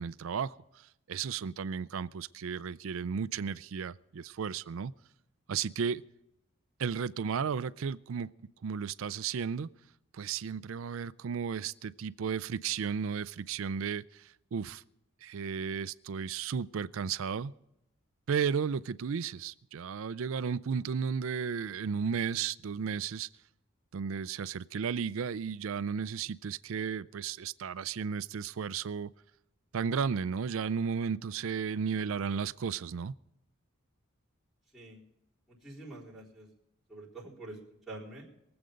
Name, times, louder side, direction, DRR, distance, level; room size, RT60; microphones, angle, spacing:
voice 1, 0.0-4.9 5.5-6.0 6.8-8.3 8.6-9.7 10.1-14.8 15.2-17.5 18.3-23.3 23.9-29.1 29.7-33.1, right 6 dB, 65° right, 0.4 m, -34 dB
voice 2, 35.5-36.5 36.9-37.6 37.9-38.3, right 2 dB, ahead, 3.9 m, -46 dB
23.0 x 7.9 x 5.2 m
head